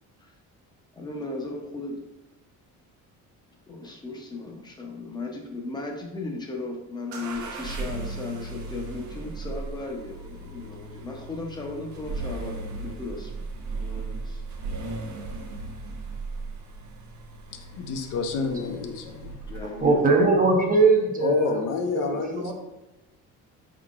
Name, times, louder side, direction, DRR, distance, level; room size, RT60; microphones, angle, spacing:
voice 1, 0.9-2.0 3.7-13.5 13.7-14.4 19.5-20.1, left 3 dB, 15° left, 0 dB, 0.6 m, -36 dB
sound 1, 7.1-20.0, right 3 dB, 60° right, 0.7 m, -37 dB
voice 2, 17.5-19.5 21.2-22.5, left 4 dB, 75° left, 4 dB, 0.7 m, -29 dB
voice 3, 19.8-21.7 21.9-22.5, right 3 dB, 25° right, 2 dB, 0.6 m, -21 dB
4.5 x 3.7 x 2.4 m, 0.98 s
cardioid pair, 140°, 32 cm